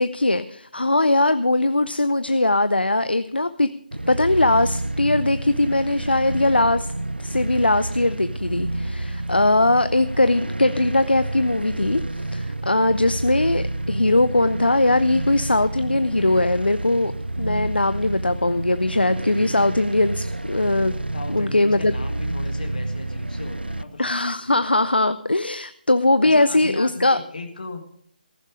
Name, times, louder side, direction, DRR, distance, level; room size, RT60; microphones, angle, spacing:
voice 1, 0.0-3.7 4.1-6.9 7.2-12.0 12.3-17.1 17.4-20.9 21.3-21.9 24.0-27.2, left 2 dB, 85° left, 13 dB, 0.6 m, -20 dB
sound 1, 3.9-23.8, right 2 dB, 85° right, 0.7 m, -29 dB
voice 2, 21.1-24.7 26.2-27.8, left 3 dB, 60° left, 4 dB, 1.9 m, -36 dB
15.0 x 11.5 x 5.0 m, 0.64 s
figure-of-eight pair, 150°, 5 cm